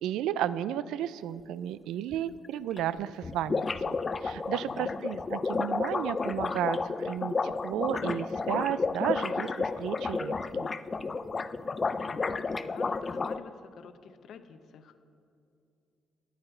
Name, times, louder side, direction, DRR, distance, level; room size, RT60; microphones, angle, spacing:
voice 1, 0.0-4.0 4.2-10.7, right 11 dB, 90° right, 17 dB, 0.3 m, -33 dB
sound 1, 2.1-2.2 2.4-2.5 2.8-2.9 3.1-13.4, left 4 dB, 35° left, 0.4 m, -31 dB
voice 2, 4.3-5.0 11.8-15.0, left 6 dB, 70° left, 10 dB, 0.7 m, -48 dB
13.0 x 9.5 x 4.4 m, 2.5 s
cardioid pair, 90°, 0 cm